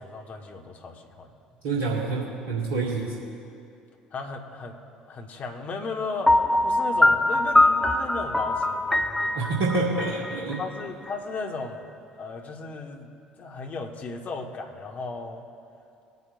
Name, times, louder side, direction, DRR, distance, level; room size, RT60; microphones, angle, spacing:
voice 1, 0.0-1.3 4.1-4.8 5.1-9.4 10.6-11.9 12.2-13.1 13.4-15.4, left 3 dB, 40° left, 3 dB, 1.4 m, -36 dB
voice 2, 1.6-3.2 9.3-10.6, right 3 dB, 70° right, -3 dB, 1.5 m, -27 dB
Piano, 6.3-11.1, left 1 dB, 5° left, 0.6 m, -22 dB
20.0 x 9.5 x 2.5 m, 2.6 s
figure-of-eight pair, 60°, 4 cm